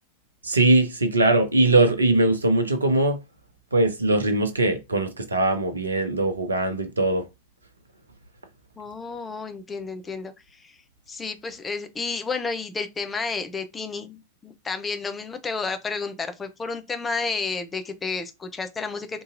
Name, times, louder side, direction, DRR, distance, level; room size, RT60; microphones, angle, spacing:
voice 1, 0.4-3.2 3.7-7.2, right 2 dB, 75° right, 0.7 m, -21 dB
voice 2, 8.8-10.3 10.6-10.7 11.1-19.2, left 4 dB, 15° left, 0.5 m, -31 dB
3.8 x 2.7 x 2.5 m
figure-of-eight pair, 90°, 0 cm